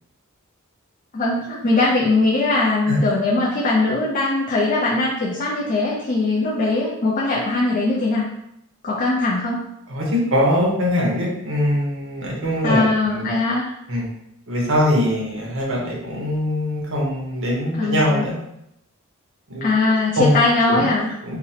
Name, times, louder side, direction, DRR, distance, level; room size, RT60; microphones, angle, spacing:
voice 1, 1.1-8.3 8.8-9.6 12.6-13.7 17.8-18.2 19.6-21.1, left 2 dB, 40° left, -5 dB, 0.4 m, -20 dB
voice 2, 9.9-13.4 13.9-14.1 14.5-18.3 19.5-19.7 20.2-20.3 20.7-20.9 21.2-21.4, equal, 65° right, -3 dB, 0.8 m, -22 dB
2.8 x 2.0 x 2.7 m, 0.79 s
head